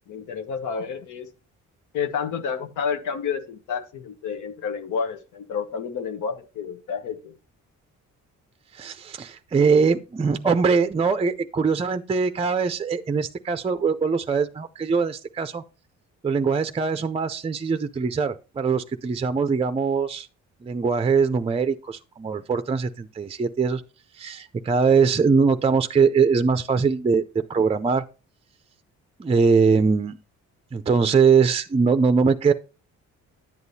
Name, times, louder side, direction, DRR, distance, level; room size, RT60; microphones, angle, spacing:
voice 1, 0.1-1.3 1.9-7.3, left 6 dB, 85° left, 1.1 m, -30 dB
voice 2, 8.7-15.6 16.2-20.3 20.6-23.8 24.1-27.2 27.5-28.0 29.2-30.2 30.7-32.5, right 5 dB, 20° right, 0.4 m, -22 dB
10.5 x 8.0 x 2.7 m
cardioid pair, 90°, 30 cm